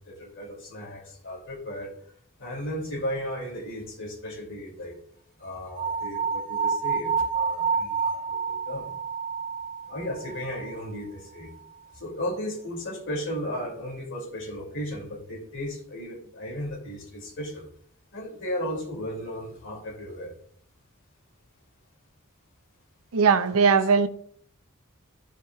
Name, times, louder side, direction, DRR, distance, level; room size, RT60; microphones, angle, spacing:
voice 1, 0.0-1.9 2.4-5.0 5.4-8.9 9.8-11.5 11.9-17.7 18.1-20.3, equal, 60° left, -2 dB, 2.6 m, -35 dB
sound 1, 5.7-10.8, right 5 dB, 40° right, 0.6 m, -29 dB
voice 2, 23.1-24.1, right 5 dB, 85° right, 11 dB, 0.6 m, -19 dB
13.0 x 4.8 x 2.3 m, 0.63 s
head